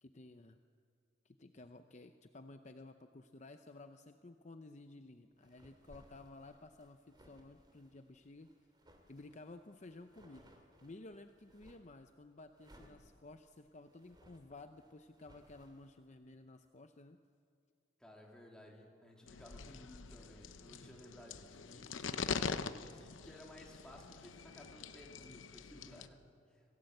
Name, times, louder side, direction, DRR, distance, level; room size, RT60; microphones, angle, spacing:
voice 1, 0.0-0.6 1.2-8.5 9.1-10.5 10.8-17.2, left 2 dB, 40° left, 8 dB, 0.7 m, -54 dB
sound 1, 5.4-12.0 12.5-15.9, equal, 25° right, 2.7 m, -65 dB
voice 2, 18.0-26.6, left 1 dB, 5° left, -1 dB, 3.1 m, -57 dB
sound 2, 19.3-26.1, left 5 dB, 90° left, 0.8 m, -43 dB
26.5 x 17.5 x 7.9 m, 2.3 s
head